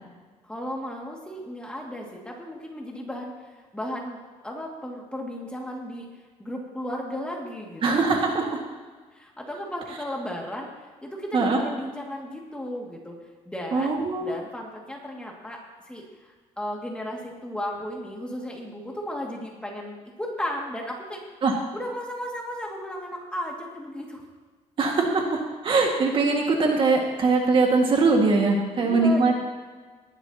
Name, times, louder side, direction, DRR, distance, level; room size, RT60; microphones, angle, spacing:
voice 1, 0.4-3.3 3.7-6.1 6.4-8.0 9.1-13.2 13.5-15.6 15.9-21.2 21.7-24.3 28.8-29.3, equal, 10° left, -1 dB, 2.2 m, -35 dB
voice 2, 7.8-8.6 11.3-11.6 13.7-14.3 21.4-21.5 24.8-29.3, right 3 dB, 45° right, 1 dB, 1.9 m, -22 dB
19.0 x 12.0 x 2.9 m, 1.4 s
cardioid pair, 135°, 12 cm